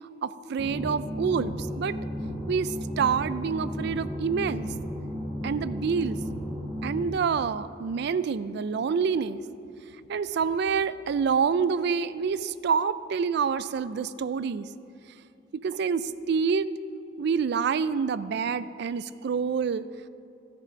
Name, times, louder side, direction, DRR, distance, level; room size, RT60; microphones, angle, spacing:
voice 1, 0.2-2.0 2.5-4.7 5.4-6.2 6.8-9.4 10.1-14.7 15.5-16.7 17.2-19.9, right 6 dB, 65° right, 15 dB, 0.3 m, -27 dB
sound 1, 0.6-7.0, equal, 25° right, 1.8 m, -34 dB
13.5 x 7.0 x 5.1 m, 2.7 s
head